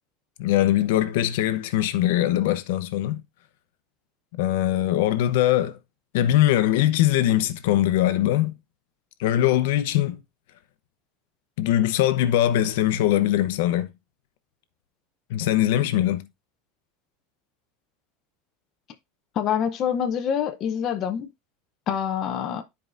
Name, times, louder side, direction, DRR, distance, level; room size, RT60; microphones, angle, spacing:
voice 1, 0.4-3.2 4.3-5.8 6.1-8.6 9.2-10.2 11.6-13.9 15.3-16.3, left 13 dB, 70° left, 0.8 m, -21 dB
voice 2, 19.4-21.3 21.9-22.6, left 8 dB, 30° left, 0.7 m, -26 dB
12.5 x 4.8 x 2.6 m
supercardioid pair, 175°, 0 cm